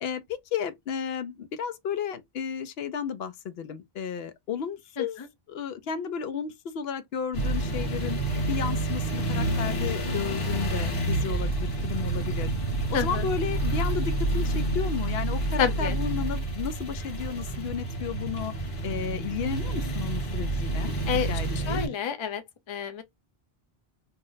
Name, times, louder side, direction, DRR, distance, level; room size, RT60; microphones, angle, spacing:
voice 1, 0.0-5.2 5.5-8.2 8.5-12.5 12.9-18.5 18.8-20.9 21.3-21.8, left 7 dB, 75° left, 0.8 m, -33 dB
sound 1, 7.3-21.9, right 2 dB, 55° left, 1.2 m, -29 dB
voice 2, 15.6-16.0 21.1-21.3 21.7-22.4 22.7-23.0, left 8 dB, 40° left, 0.5 m, -28 dB
2.7 x 2.1 x 3.8 m
omnidirectional pair, 1.0 m